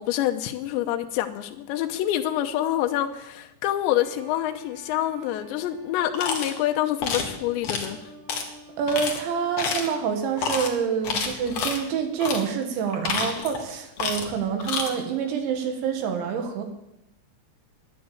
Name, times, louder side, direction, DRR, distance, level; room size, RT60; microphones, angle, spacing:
voice 1, 0.0-8.1, left 12 dB, 80° left, 5 dB, 3.0 m, -27 dB
sound 1, 4.0-10.3, right 1 dB, 60° right, 3.8 m, -48 dB
sound 2, 6.1-6.5 7.0-7.3 7.6-7.9 8.3-8.4 8.9-9.2 9.6-9.9 10.4-10.7 11.0-11.8 12.2-12.4 12.9-13.6 14.0-14.3 14.6-14.9, left 5 dB, 60° left, 1.7 m, -28 dB
voice 2, 8.8-16.6, right 6 dB, 75° right, 5 dB, 3.9 m, -27 dB
10.5 x 9.5 x 8.5 m, 0.88 s
omnidirectional pair, 5.4 m